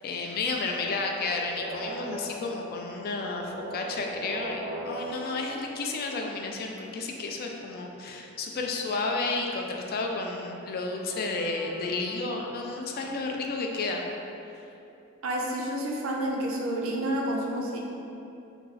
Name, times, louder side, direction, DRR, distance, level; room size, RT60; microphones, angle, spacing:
voice 1, 0.0-14.0, left 3 dB, 45° left, 1 dB, 0.3 m, -32 dB
sound 1, 1.3-6.6 10.9-12.6, right 1 dB, 15° left, 0.7 m, -40 dB
voice 2, 15.2-17.8, right 1 dB, 70° right, -1 dB, 0.5 m, -29 dB
3.0 x 2.3 x 3.9 m, 2.8 s
head